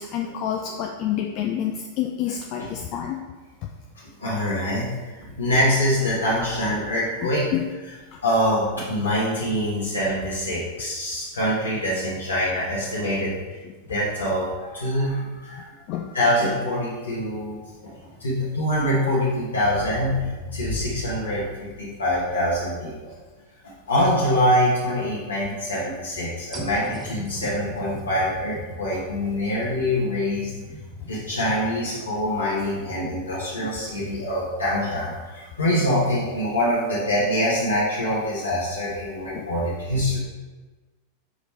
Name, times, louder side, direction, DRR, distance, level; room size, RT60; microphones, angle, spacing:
voice 1, 0.0-3.2 7.2-7.7 8.1-8.2 13.6-13.7 15.9-16.1 39.3-39.5, left 10 dB, 40° left, 2 dB, 0.4 m, -28 dB
voice 2, 4.2-4.9 5.2-7.5 8.2-13.4 13.9-15.7 16.1-17.9 18.2-23.1 23.6-30.5 31.0-40.2, equal, 75° left, -8 dB, 1.3 m, -24 dB
sound 1, 17.3-21.0 21.5-21.6 26.5-36.4, equal, 20° right, 0.8 m, -42 dB
5.1 x 4.9 x 4.1 m, 1.3 s
figure-of-eight pair, 90°, 0 cm